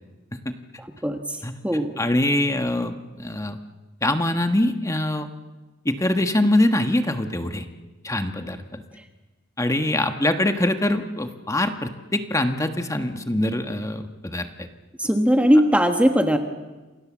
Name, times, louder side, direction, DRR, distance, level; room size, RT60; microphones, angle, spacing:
voice 1, 0.8-1.4 1.6-1.9 15.0-16.4, equal, 5° right, 5 dB, 1.4 m, -19 dB
voice 2, 2.0-3.6 4.0-5.3 5.8-7.6 8.0-8.8 9.6-14.7, left 1 dB, 15° left, 7 dB, 1.4 m, -23 dB
28.0 x 27.5 x 7.4 m, 1.2 s
head